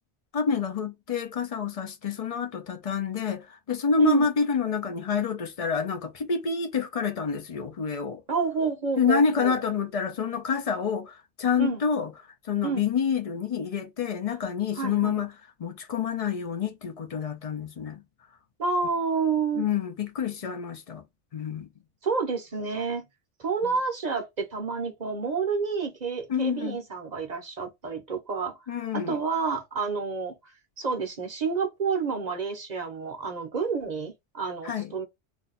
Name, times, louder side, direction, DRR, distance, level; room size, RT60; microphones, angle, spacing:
voice 1, 0.3-8.2 9.0-12.1 12.4-15.3 15.6-18.0 19.6-21.0 21.3-21.7 23.6-23.7 26.3-26.8 28.7-29.2 34.6-34.9, left 6 dB, 45° left, 0.4 m, -28 dB
voice 2, 8.3-9.6 11.6-11.8 12.6-12.8 14.8-15.2 18.6-19.7 22.0-23.0 23.4-28.5 28.9-30.3 30.8-35.0, right 5 dB, 45° right, 0.7 m, -29 dB
2.6 x 2.2 x 3.8 m
omnidirectional pair, 1.2 m